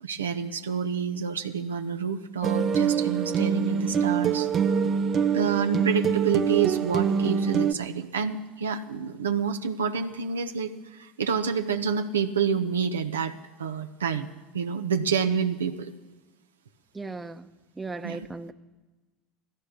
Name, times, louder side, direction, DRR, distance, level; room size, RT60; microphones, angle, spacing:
voice 1, 0.0-4.5 5.3-13.3 13.6-14.3 14.5-15.9 18.0-18.2, right 6 dB, 90° right, 7 dB, 0.9 m, -28 dB
sound 1, 2.4-7.7, right 7 dB, 40° right, 0.7 m, -25 dB
voice 2, 16.9-17.5 17.8-18.5, right 3 dB, 15° right, 10 dB, 0.9 m, -36 dB
15.5 x 14.0 x 6.5 m, 1.2 s
hypercardioid pair, 75°, 0 cm